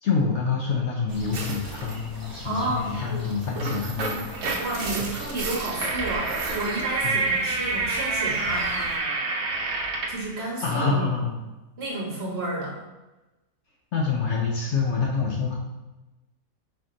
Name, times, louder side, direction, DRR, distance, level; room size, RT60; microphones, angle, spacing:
voice 1, 0.0-4.4 7.0-7.2 10.6-11.5 13.9-15.5, left 5 dB, 65° left, -2 dB, 0.8 m, -26 dB
sound 1, 1.1-9.0, equal, 30° right, 0.3 m, -42 dB
sound 2, 1.3-2.0 3.3-10.2, right 3 dB, 75° right, 1.1 m, -28 dB
voice 2, 2.4-3.3 4.6-8.9 10.1-11.1 11.8-12.8, right 2 dB, 50° right, -3 dB, 1.1 m, -31 dB
4.3 x 2.8 x 3.7 m, 1.1 s
omnidirectional pair, 1.6 m